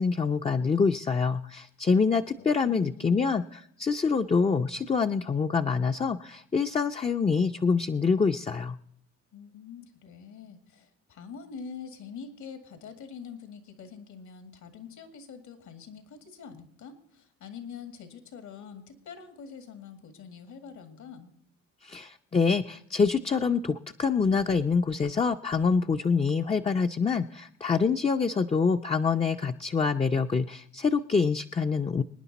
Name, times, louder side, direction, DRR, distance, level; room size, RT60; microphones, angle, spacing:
voice 1, 0.0-8.8 21.8-32.0, left 5 dB, 20° left, 5 dB, 0.5 m, -26 dB
voice 2, 2.0-3.4 9.3-21.3, left 6 dB, 75° left, 7 dB, 2.1 m, -45 dB
25.0 x 9.9 x 4.1 m, 0.70 s
cardioid pair, 90°, 30 cm